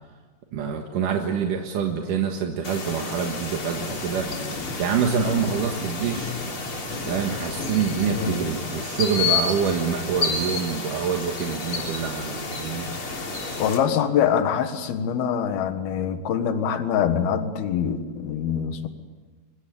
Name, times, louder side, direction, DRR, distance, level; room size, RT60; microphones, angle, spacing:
voice 1, 0.5-4.3 4.8-6.3 7.0-12.9, right 7 dB, 60° right, 3 dB, 2.4 m, -26 dB
sound 1, 2.6-13.8, left 4 dB, 30° left, 3.4 m, -30 dB
voice 2, 13.6-18.9, left 8 dB, 65° left, 9 dB, 2.9 m, -24 dB
24.0 x 22.5 x 8.4 m, 1.4 s
omnidirectional pair, 5.5 m